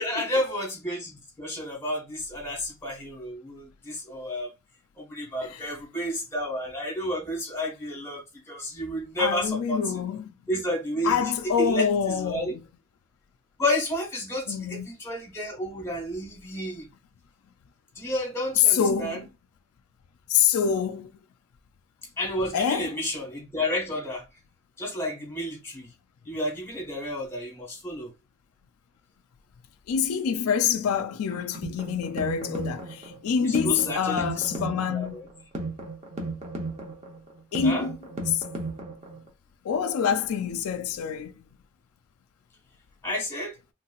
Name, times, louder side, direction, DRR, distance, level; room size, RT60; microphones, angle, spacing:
voice 1, 0.0-4.5 5.0-9.9 10.5-11.2 11.6-12.5 13.6-16.9 17.9-19.2 22.2-24.2 24.8-25.9 26.2-28.1 33.4-34.2 34.5-34.6 34.9-35.2 37.6-37.9 43.0-43.5, left 1 dB, 10° left, 1.2 m, -31 dB
voice 2, 9.2-10.3 11.0-12.5 14.5-14.9 18.7-19.3 20.3-21.1 22.5-23.0 29.9-35.2 37.5-37.9 38.3-38.4 39.6-41.3, left 7 dB, 80° left, 0.3 m, -26 dB
sound 1, 31.3-39.3, right 2 dB, 30° right, 0.7 m, -35 dB
3.2 x 2.9 x 2.3 m
head